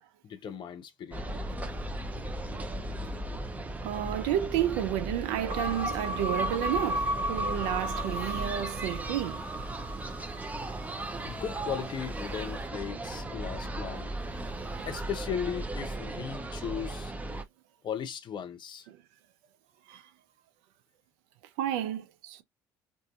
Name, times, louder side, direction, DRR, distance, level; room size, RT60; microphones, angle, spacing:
voice 1, 0.2-1.2 11.0-14.1 14.9-17.1 17.8-18.9, left 8 dB, 50° left, 0.7 m, -37 dB
sound 1, 1.1-17.4, right 1 dB, 15° right, 0.7 m, -37 dB
voice 2, 3.8-9.4 13.4-13.5 14.8-14.9 18.9-19.0 19.9-20.0 21.6-22.4, right 11 dB, 75° right, 0.5 m, -31 dB
sound 2, 5.5-11.8, equal, 45° right, 0.9 m, -35 dB
2.7 x 2.6 x 2.3 m
hypercardioid pair, 60°, 10 cm